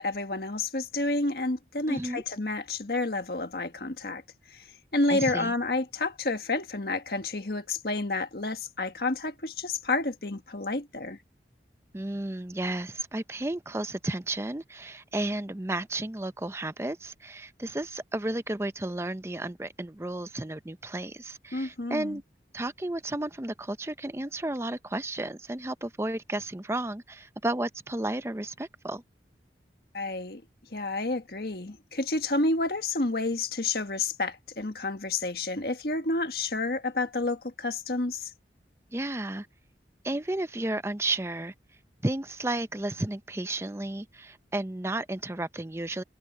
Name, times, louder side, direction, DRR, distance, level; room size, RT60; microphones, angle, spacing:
voice 1, 0.0-4.2 4.5-11.2 21.5-22.2 29.9-30.4 30.7-38.3, left 2 dB, 60° left, 1.6 m, -30 dB
voice 2, 1.9-2.2 5.1-5.5 11.9-22.2 22.5-29.0 38.9-39.5 40.0-41.5 42.0-46.0, right 1 dB, 15° right, 0.6 m, -33 dB
head